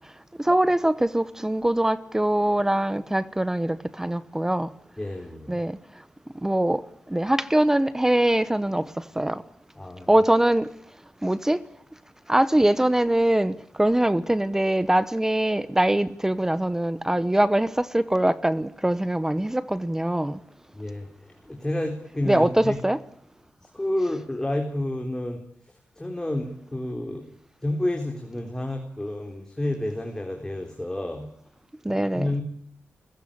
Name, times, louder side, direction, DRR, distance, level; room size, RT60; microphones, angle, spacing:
voice 1, 0.4-4.7 5.5-5.7 6.4-9.4 10.1-10.7 11.2-11.6 12.3-20.4 22.2-23.0 24.0-24.1 31.8-32.3, right 1 dB, 10° right, 1.0 m, -23 dB
voice 2, 5.0-5.6 9.7-10.1 20.7-22.8 23.6-25.4 26.0-27.2 27.6-31.3 31.9-32.4, left 1 dB, 15° left, 3.8 m, -30 dB
30.0 x 16.0 x 8.7 m
cardioid pair, 85°, 4 cm